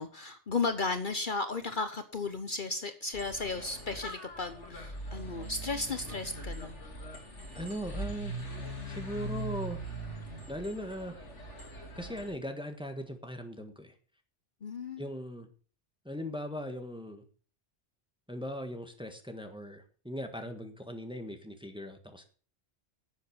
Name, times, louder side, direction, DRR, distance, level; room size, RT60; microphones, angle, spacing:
voice 1, 0.0-6.8 14.6-15.0, left 3 dB, 50° left, 9 dB, 1.1 m, -34 dB
sound 1, 3.1-12.3, right 2 dB, 85° left, 2.9 m, -41 dB
voice 2, 7.5-8.3 8.9-9.8 10.5-11.2 11.9-13.9 15.0-15.5 16.0-17.2 18.3-22.2, equal, 5° right, 6 dB, 1.5 m, -39 dB
11.5 x 7.8 x 7.1 m, 0.41 s
omnidirectional pair, 1.2 m